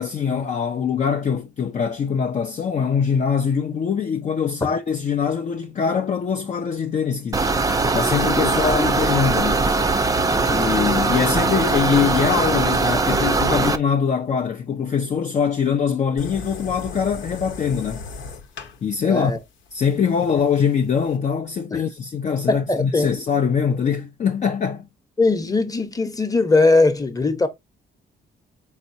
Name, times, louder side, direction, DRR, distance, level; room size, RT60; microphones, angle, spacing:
voice 1, 0.0-7.5 7.9-9.6 10.5-18.0 18.8-19.3 19.7-24.9, left 7 dB, 35° left, 0.5 m, -23 dB
sound 1, 7.3-13.8, right 3 dB, 15° right, 0.5 m, -20 dB
sound 2, 16.2-21.2, left 4 dB, 80° left, 0.9 m, -38 dB
voice 2, 19.0-19.4 21.7-21.8 22.5-23.2 25.2-27.5, left 3 dB, 20° left, 0.9 m, -19 dB
4.5 x 4.1 x 2.6 m
cardioid pair, 90°, 20 cm